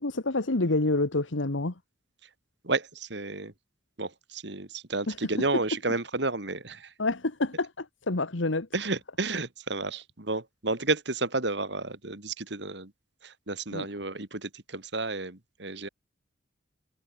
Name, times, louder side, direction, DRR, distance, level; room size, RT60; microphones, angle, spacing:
voice 1, 0.0-1.7 5.1-5.2 7.0-8.7 13.7-13.9, left 2 dB, 80° left, 1.6 m, -28 dB
voice 2, 2.6-3.5 4.0-6.9 8.7-12.9 13.2-15.9, right 3 dB, 60° right, 2.4 m, -31 dB
head